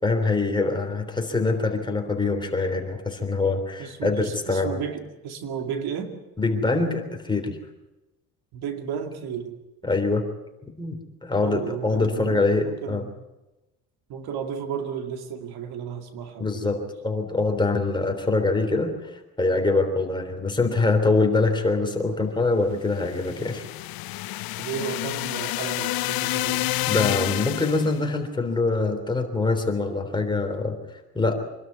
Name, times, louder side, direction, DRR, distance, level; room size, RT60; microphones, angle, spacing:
voice 1, 0.0-4.8 6.4-7.6 9.8-10.2 10.8-13.0 16.4-23.6 26.9-30.8 31.1-31.3, left 3 dB, 10° left, 4 dB, 3.4 m, -24 dB
voice 2, 3.8-6.1 8.5-9.6 11.4-13.1 14.1-16.9 24.6-26.7, right 7 dB, 75° right, 6 dB, 2.4 m, -33 dB
sound 1, 23.0-28.0, left 18 dB, 65° left, 0.7 m, -29 dB
25.5 x 12.5 x 9.6 m, 1.0 s
cardioid pair, 120°, 38 cm